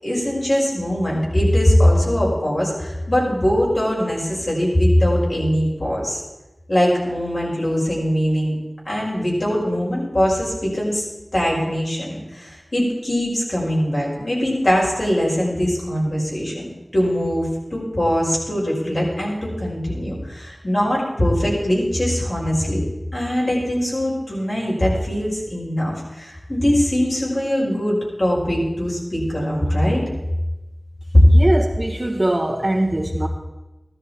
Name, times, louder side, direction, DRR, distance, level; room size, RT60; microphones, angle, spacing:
voice 1, 0.0-6.2 6.7-8.6 8.8-11.0 11.3-22.8 23.1-30.0 31.1-31.2, equal, 55° left, -5 dB, 6.0 m, -21 dB
voice 2, 31.3-33.3, right 1 dB, 30° right, -2 dB, 2.2 m, -21 dB
15.0 x 13.0 x 4.5 m, 1.1 s
wide cardioid pair, 55°, 0 cm